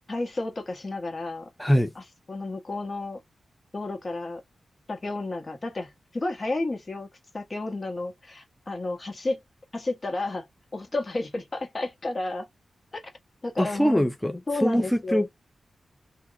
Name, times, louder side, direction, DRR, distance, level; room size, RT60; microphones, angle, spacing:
voice 1, 0.1-1.5 1.9-3.2 3.7-4.4 4.9-7.1 7.3-9.4 9.7-10.5 10.7-12.5 12.9-13.1 13.4-14.1 14.5-15.3, left 2 dB, 40° left, 1.5 m, -32 dB
voice 2, 1.6-1.9 13.6-15.3, equal, 5° left, 0.5 m, -23 dB
2.8 x 2.3 x 4.0 m
cardioid pair, 55°, 0 cm